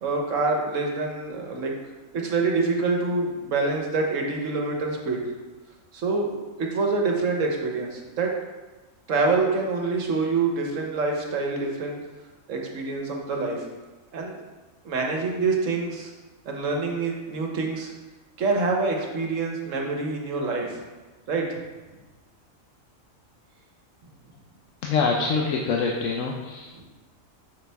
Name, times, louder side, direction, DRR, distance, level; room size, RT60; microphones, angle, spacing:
voice 1, 0.0-1.7 2.2-5.3 5.9-8.3 9.1-12.0 12.5-13.6 14.1-14.4 14.8-16.1 16.4-17.9 18.4-20.8 21.3-21.6 26.8-26.9, right 3 dB, 70° right, 1 dB, 1.3 m, -26 dB
voice 2, 24.8-26.8, left 4 dB, 75° left, 0 dB, 1.0 m, -25 dB
7.1 x 5.6 x 3.4 m, 1.2 s
omnidirectional pair, 1.4 m